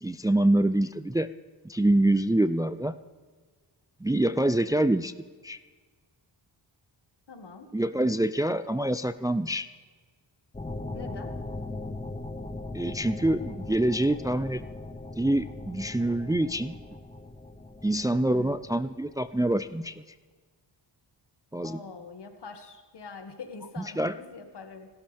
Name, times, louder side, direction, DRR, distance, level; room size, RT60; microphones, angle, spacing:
voice 1, 0.0-1.3 1.6-2.9 4.0-5.1 5.4-5.6 7.7-9.7 12.7-14.6 15.2-16.8 17.8-20.0 21.5-21.8 24.0-24.1, right 1 dB, 10° right, 12 dB, 0.5 m, -25 dB
voice 2, 7.3-7.7 10.9-11.3 18.2-18.6 21.6-24.9, left 4 dB, 65° left, 5 dB, 2.2 m, -44 dB
sound 1, 10.5-19.7, left 2 dB, 15° left, 1.2 m, -39 dB
29.5 x 13.0 x 3.6 m, 1.5 s
wide cardioid pair, 90°, 43 cm